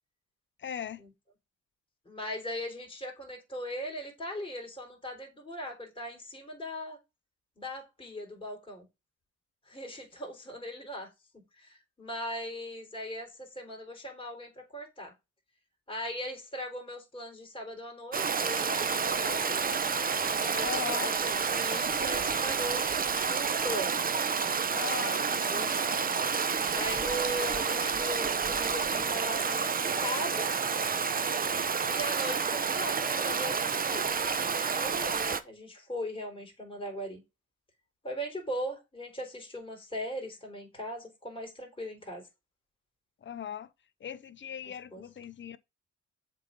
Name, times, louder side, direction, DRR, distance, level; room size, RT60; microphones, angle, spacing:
voice 1, 0.6-1.0 20.6-21.1 24.7-25.7 43.2-43.7 44.0-45.6, left 8 dB, 40° left, 0.7 m, -39 dB
voice 2, 2.1-7.0 7.6-8.9 9.7-11.1 11.6-15.1 15.9-19.8 20.2-22.9 23.3-24.3 25.0-25.9 26.7-30.5 31.9-34.0 34.6-37.2 38.0-42.2 44.6-45.0, equal, 15° left, 3.8 m, -39 dB
Stream, 18.1-35.4, right 5 dB, 30° right, 0.8 m, -29 dB
7.5 x 3.9 x 5.2 m
cardioid pair, 90°, 30 cm